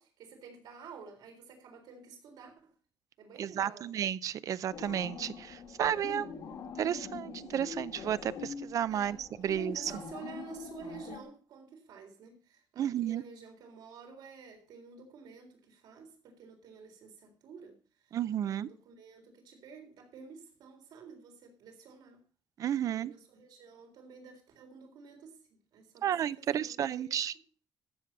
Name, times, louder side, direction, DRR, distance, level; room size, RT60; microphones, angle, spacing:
voice 1, 0.0-2.7 3.2-3.9 8.9-9.2 9.7-22.2 22.8-25.4 25.7-27.2, right 5 dB, 80° right, 3.9 m, -51 dB
voice 2, 3.4-6.3 6.8-9.9 12.8-13.2 18.1-18.7 22.6-23.1 26.0-27.3, right 10 dB, 50° right, 0.5 m, -32 dB
sound 1, 4.7-11.2, left 6 dB, 60° left, 1.8 m, -44 dB
14.5 x 7.5 x 5.4 m
cardioid pair, 180°, 7 cm